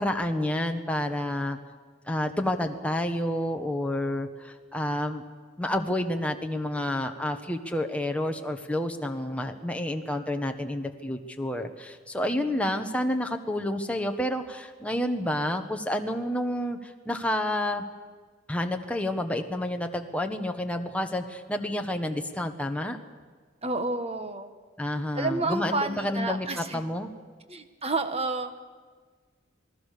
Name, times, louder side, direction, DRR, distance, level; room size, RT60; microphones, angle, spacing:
voice 1, 0.0-1.6 2.1-5.2 5.6-17.8 18.5-23.0 24.8-26.5 26.7-27.1, left 1 dB, 5° left, 4 dB, 1.4 m, -29 dB
voice 2, 12.3-12.9 23.6-24.5 25.1-26.8 27.5-28.6, right 3 dB, 30° right, 8 dB, 1.6 m, -30 dB
27.5 x 19.5 x 6.8 m, 1.5 s
head